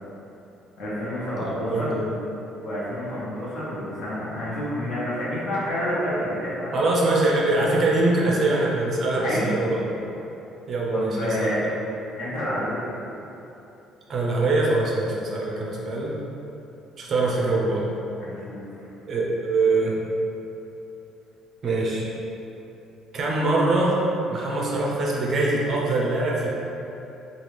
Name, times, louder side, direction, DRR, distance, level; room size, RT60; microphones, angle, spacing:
voice 1, 0.8-2.0 2.6-6.8 9.2-9.7 10.9-11.6 12.2-12.7 18.2-18.6, equal, 60° left, -8 dB, 0.9 m, -28 dB
voice 2, 1.3-2.1 6.7-9.8 10.7-11.5 14.1-16.2 17.0-17.8 19.1-20.0 21.6-22.1 23.1-24.0 24.3-26.5, right 2 dB, 35° right, -4 dB, 0.4 m, -23 dB
2.9 x 2.3 x 3.3 m, 3.0 s
cardioid pair, 165°, 0 cm